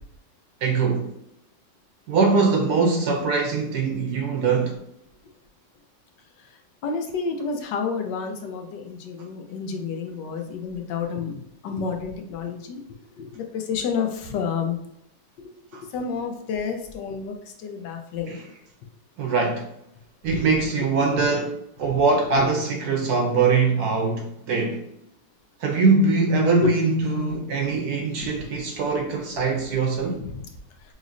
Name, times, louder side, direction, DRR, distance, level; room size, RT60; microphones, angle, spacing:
voice 1, 0.6-1.1 2.1-4.8 15.7-15.8 18.3-18.4 19.2-19.7 20.2-21.5 21.8-24.8 25.6-30.2, right 4 dB, 70° right, 1.0 m, -22 dB
voice 2, 6.8-12.8 13.2-14.8 15.9-18.4 20.3-20.5 21.9-22.0 22.3-22.5 26.6-26.7 28.2-28.4 30.2-30.4, left 5 dB, 75° left, 1.3 m, -30 dB
5.1 x 3.0 x 2.5 m
omnidirectional pair, 1.9 m